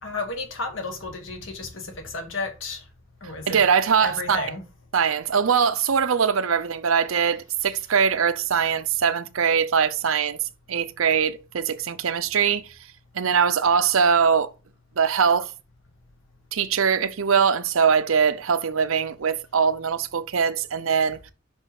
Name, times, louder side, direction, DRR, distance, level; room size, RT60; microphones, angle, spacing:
voice 1, 0.0-2.8 3.2-3.6 4.0-4.6, left 3 dB, 65° left, 1.7 m, -33 dB
voice 2, 3.5-4.5 4.9-10.4 10.7-12.7 13.2-14.5 15.0-15.5 16.5-21.2, right 6 dB, 80° right, 0.6 m, -22 dB
5.5 x 4.4 x 4.8 m
head